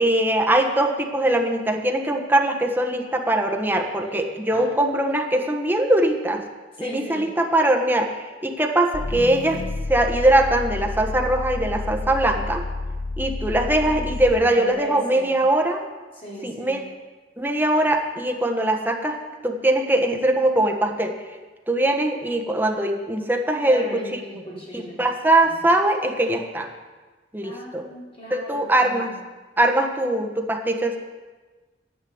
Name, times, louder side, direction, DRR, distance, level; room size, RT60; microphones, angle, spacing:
voice 1, 0.0-6.4 6.8-9.6 9.9-12.6 13.2-15.8 16.4-16.8 17.4-19.2 19.4-21.1 21.7-24.2 24.7-26.7 27.3-27.8 28.3-29.1 29.6-31.0, right 1 dB, 10° right, 2 dB, 1.3 m, -21 dB
voice 2, 4.5-5.2 6.7-7.3 13.5-15.4 16.1-16.9 23.6-25.0 25.4-25.6 27.4-29.2, equal, 35° left, -6 dB, 4.8 m, -38 dB
sound 1, 8.9-14.5, left 2 dB, 80° left, 0.9 m, -30 dB
10.0 x 9.7 x 8.0 m, 1.3 s
head